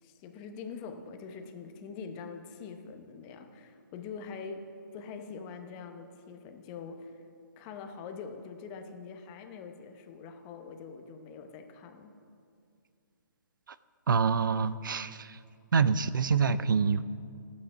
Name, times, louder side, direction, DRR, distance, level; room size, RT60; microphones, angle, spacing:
voice 1, 0.0-7.2 7.6-12.2, left 5 dB, 25° left, 6 dB, 0.8 m, -44 dB
voice 2, 14.1-15.4 15.7-17.0, right 5 dB, 75° right, 15 dB, 0.5 m, -26 dB
11.5 x 8.6 x 5.9 m, 2.3 s
hypercardioid pair, 150°, 11 cm